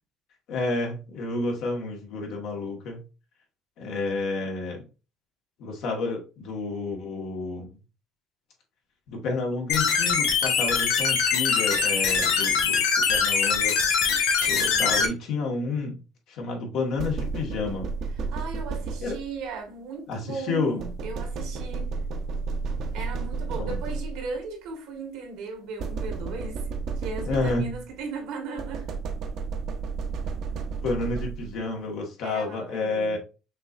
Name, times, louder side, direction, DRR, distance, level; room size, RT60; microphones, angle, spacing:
voice 1, 0.5-3.0 3.8-4.8 5.6-7.6 9.1-12.8 13.1-14.1 14.5-16.0 16.3-17.9 19.0-19.2 20.1-20.8 23.5-23.8 27.2-27.7 30.8-33.2, left 3 dB, 75° left, 1.7 m, -30 dB
sound 1, 9.7-15.1, left 6 dB, 90° left, 1.0 m, -23 dB
voice 2, 14.6-15.0 18.3-21.9 22.9-26.6 27.0-28.9 32.2-33.2, right 4 dB, 85° right, 1.6 m, -37 dB
sound 2, 17.0-19.5 20.8-24.4 25.8-28.0 28.6-31.7, right 4 dB, 65° right, 0.8 m, -32 dB
5.9 x 3.0 x 2.5 m
cardioid pair, 105°, 0 cm